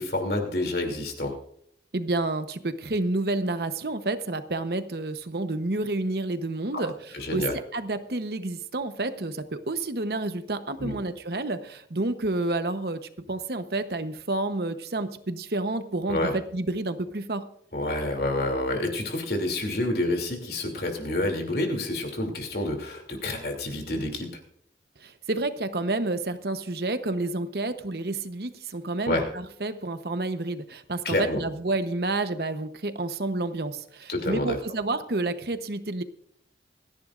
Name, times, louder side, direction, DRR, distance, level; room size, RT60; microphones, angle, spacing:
voice 1, 0.0-1.3 6.7-6.9 7.1-7.5 10.8-11.0 16.1-16.3 17.7-24.3 29.1-29.2 31.0-31.4 34.1-34.6, left 1 dB, 60° left, 2 dB, 2.9 m, -28 dB
voice 2, 1.9-13.0 13.3-17.4 25.0-36.0, right 2 dB, 60° right, 10 dB, 1.0 m, -29 dB
27.5 x 10.5 x 2.5 m, 0.66 s
head